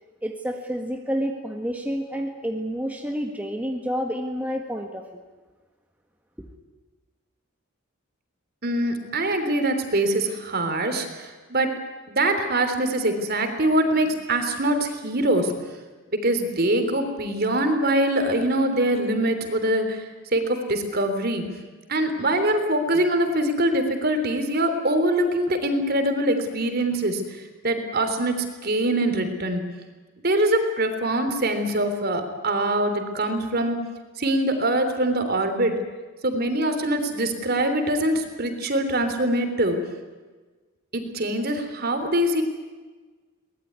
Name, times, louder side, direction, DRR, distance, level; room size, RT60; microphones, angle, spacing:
voice 1, 0.2-5.0 6.4-6.5, equal, 5° right, 2 dB, 1.6 m, -29 dB
voice 2, 8.6-11.7 12.1-15.5 16.2-20.0 20.3-21.4 21.9-29.6 30.2-33.8 34.2-35.8 36.2-39.8 40.9-42.4, right 1 dB, 45° right, 7 dB, 3.3 m, -23 dB
23.0 x 20.0 x 9.6 m, 1.3 s
head